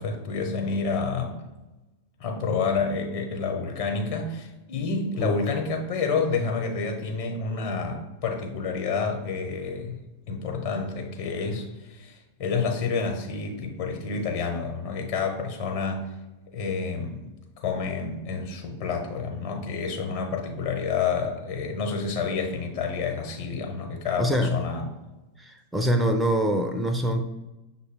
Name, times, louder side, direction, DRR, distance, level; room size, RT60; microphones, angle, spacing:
voice 1, 0.0-1.4 2.2-10.0 10.3-16.1 16.5-17.2 17.6-24.9, left 4 dB, 50° left, 2 dB, 0.9 m, -29 dB
voice 2, 24.2-24.6 25.4-27.2, right 1 dB, 10° right, 6 dB, 0.4 m, -25 dB
6.4 x 2.2 x 3.6 m, 1.1 s
figure-of-eight pair, 90°, 0 cm